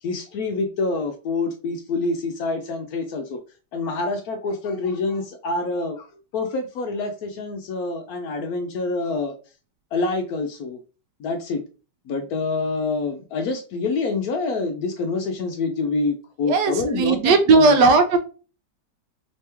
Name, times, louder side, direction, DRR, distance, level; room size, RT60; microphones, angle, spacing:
voice 1, 0.0-3.4 3.7-6.1 6.3-9.3 9.9-10.8 11.2-11.6 12.1-17.7, left 3 dB, 70° left, 0.9 m, -26 dB
voice 2, 16.4-18.2, right 3 dB, 75° right, 1.2 m, -16 dB
3.3 x 2.9 x 3.3 m
omnidirectional pair, 1.9 m